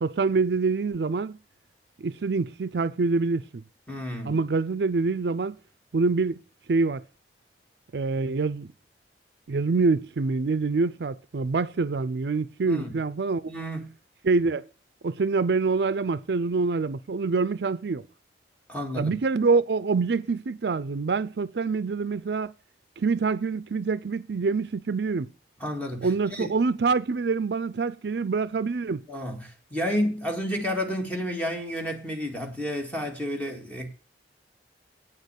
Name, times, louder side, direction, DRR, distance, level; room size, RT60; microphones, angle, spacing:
voice 1, 0.0-1.4 2.0-3.6 4.2-5.6 5.9-6.4 6.7-7.0 7.9-8.7 9.5-13.4 14.2-14.7 15.0-18.0 19.0-22.5 23.0-25.3 26.0-29.0, right 4 dB, 70° right, 0.5 m, -25 dB
voice 2, 3.9-4.3 12.6-12.9 13.5-13.9 18.7-19.2 25.6-26.5 29.1-33.9, equal, 10° left, 2.1 m, -31 dB
8.8 x 6.6 x 8.2 m
head